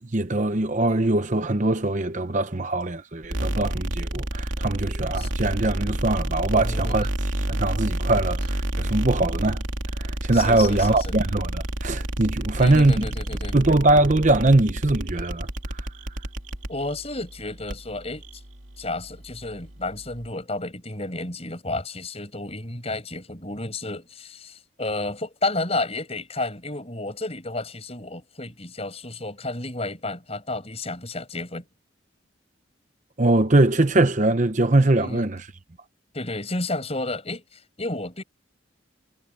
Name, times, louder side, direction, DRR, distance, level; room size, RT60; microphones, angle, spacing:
voice 1, 0.1-7.1 7.4-9.6 9.9-13.1 13.5-15.9 33.2-35.5, right 2 dB, 40° right, 0.8 m, -22 dB
sound 1, 3.2-20.3, right 1 dB, 75° right, 3.2 m, -30 dB
voice 2, 6.5-7.0 9.2-9.3 10.3-11.1 12.6-13.6 16.7-18.2 18.8-31.6 35.0-35.3 36.1-37.4 37.8-38.2, left 2 dB, 30° left, 7.2 m, -31 dB
head